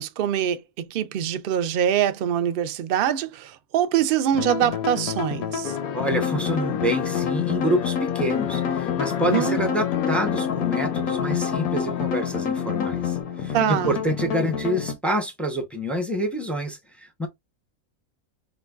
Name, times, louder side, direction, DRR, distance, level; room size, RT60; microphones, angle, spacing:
voice 1, 0.0-5.8 9.3-9.6 13.5-13.9, right 10 dB, 65° right, 0.5 m, -24 dB
sound 1, 4.3-14.9, left 8 dB, 90° left, 1.2 m, -28 dB
sound 2, 5.6-13.2, left 9 dB, 70° left, 0.5 m, -32 dB
voice 2, 5.9-17.3, equal, ahead, 0.6 m, -27 dB
5.1 x 2.2 x 2.3 m
omnidirectional pair, 1.5 m